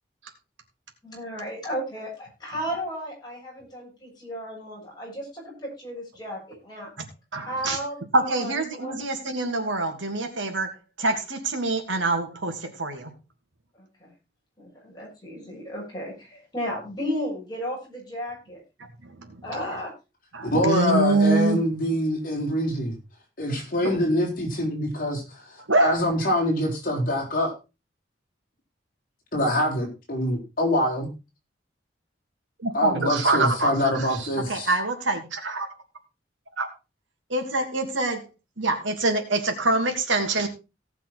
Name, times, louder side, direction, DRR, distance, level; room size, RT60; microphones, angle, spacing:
voice 1, 1.0-6.9 7.3-9.0 13.7-14.1 14.6-18.6 19.4-19.9, equal, 20° left, -3 dB, 7.4 m, -34 dB
voice 2, 7.3-7.8 8.1-10.7 11.0-13.1 19.0-19.3 20.3-21.6 23.8-24.0 25.7-26.0 32.6-35.7 36.6-36.7 37.3-38.2 38.6-40.5, right 2 dB, 90° right, 4 dB, 2.8 m, -25 dB
voice 3, 20.4-22.9 23.4-25.4 25.8-27.5 29.3-31.1 32.7-34.7, equal, 45° left, 0 dB, 4.2 m, -25 dB
18.0 x 6.1 x 4.3 m, 0.29 s
head